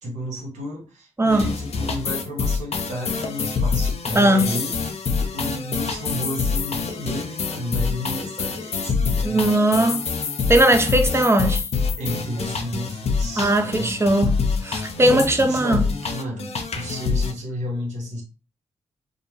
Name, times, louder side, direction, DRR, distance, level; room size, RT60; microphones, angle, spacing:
voice 1, 0.0-4.7 5.3-9.9 12.0-14.0 15.0-18.2, equal, 75° right, 1.0 m, -32 dB
voice 2, 1.2-1.5 4.2-4.5 9.2-10.1 10.5-11.6 13.4-14.3 14.6-15.8, right 1 dB, 20° right, 0.6 m, -18 dB
sound 1, 1.3-17.3, left 5 dB, 60° left, 0.5 m, -26 dB
2.4 x 2.1 x 3.1 m
supercardioid pair, 45°, 12 cm